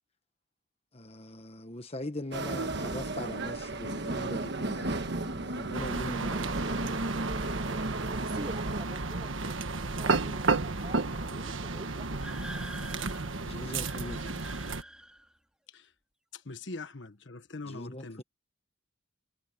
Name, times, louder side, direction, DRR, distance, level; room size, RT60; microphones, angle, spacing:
voice 1, 0.9-6.6 10.3-10.4 13.4-14.4 17.7-18.2, left 1 dB, 30° left, 1.3 m, -41 dB
sound 1, 2.3-8.8, right 2 dB, 55° right, 1.4 m, -34 dB
sound 2, 5.7-14.8, right 3 dB, 70° right, 1.5 m, -32 dB
voice 2, 8.2-12.8, right 1 dB, 30° right, 4.0 m, -47 dB
sound 3, 12.2-15.4, right 1 dB, 5° right, 4.8 m, -46 dB
voice 3, 16.3-18.2, left 3 dB, 60° left, 1.3 m, -42 dB
head